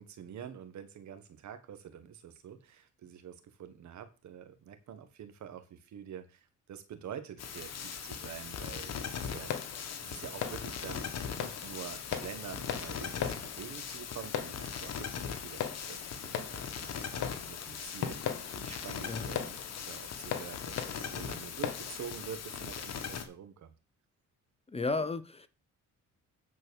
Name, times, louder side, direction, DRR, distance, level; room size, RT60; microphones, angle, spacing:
voice 1, 0.0-9.5 10.0-19.5 19.9-23.7, right 9 dB, 70° right, 1.5 m, -47 dB
sound 1, 7.4-23.3, left 7 dB, 60° left, 1.5 m, -40 dB
sound 2, 9.0-22.2, left 9 dB, 75° left, 1.4 m, -41 dB
voice 2, 24.7-25.5, left 3 dB, 20° left, 0.7 m, -33 dB
9.6 x 4.6 x 6.4 m
cardioid pair, 90°, 30 cm